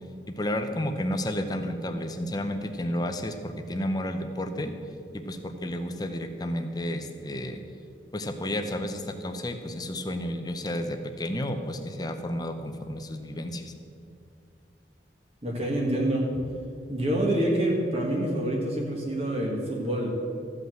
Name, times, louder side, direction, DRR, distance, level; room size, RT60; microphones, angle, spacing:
voice 1, 0.3-4.7 5.1-7.6 8.1-13.7, left 1 dB, 20° left, 7 dB, 0.7 m, -31 dB
voice 2, 15.4-16.5 16.9-20.1, right 1 dB, 35° right, -2 dB, 1.5 m, -27 dB
13.5 x 5.6 x 7.7 m, 2.5 s
head